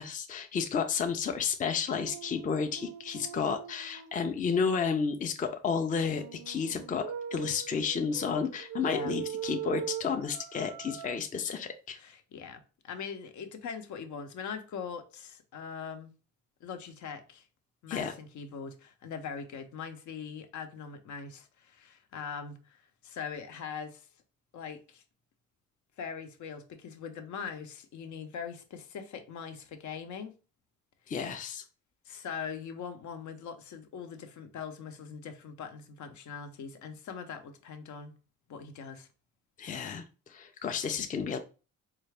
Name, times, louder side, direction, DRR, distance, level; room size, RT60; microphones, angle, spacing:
voice 1, 0.0-12.0 17.9-18.1 31.1-31.6 39.6-40.0 40.3-41.4, left 6 dB, 25° left, 0.4 m, -31 dB
sound 1, 1.9-4.2 6.0-11.2, right 10 dB, 70° right, 0.5 m, -41 dB
voice 2, 8.8-9.1 11.9-16.1 16.6-17.5 17.8-24.1 24.5-25.0 26.0-30.4 32.0-38.1 38.5-39.1, left 6 dB, 70° left, 0.8 m, -41 dB
4.0 x 2.4 x 3.3 m
cardioid pair, 90°, 30 cm